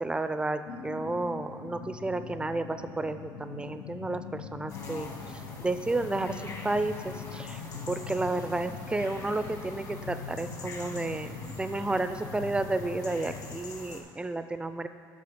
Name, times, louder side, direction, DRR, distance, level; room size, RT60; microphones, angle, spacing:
voice 1, 0.0-5.1 5.6-7.6 7.9-14.9, right 2 dB, 10° right, 10 dB, 0.3 m, -32 dB
sound 1, 0.7-13.6, left 6 dB, 85° left, 0.6 m, -42 dB
sound 2, 4.7-14.0, left 2 dB, 40° left, 1.2 m, -44 dB
6.8 x 6.6 x 5.0 m, 2.4 s
cardioid pair, 100°, 8 cm